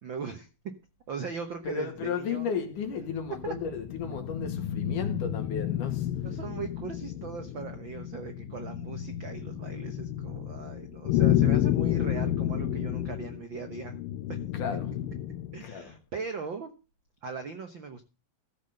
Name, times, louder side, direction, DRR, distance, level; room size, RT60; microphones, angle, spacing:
voice 1, 0.0-0.7 1.1-2.5 3.4-3.5 6.2-14.0 14.3-14.4 15.5-16.7 17.2-18.0, right 5 dB, 65° right, 1.2 m, -39 dB
voice 2, 1.6-6.4 14.5-15.0 15.6-16.0, left 6 dB, 65° left, 3.5 m, -34 dB
sound 1, 3.0-15.7, left 12 dB, 90° left, 2.5 m, -30 dB
14.5 x 5.8 x 6.6 m
omnidirectional pair, 3.9 m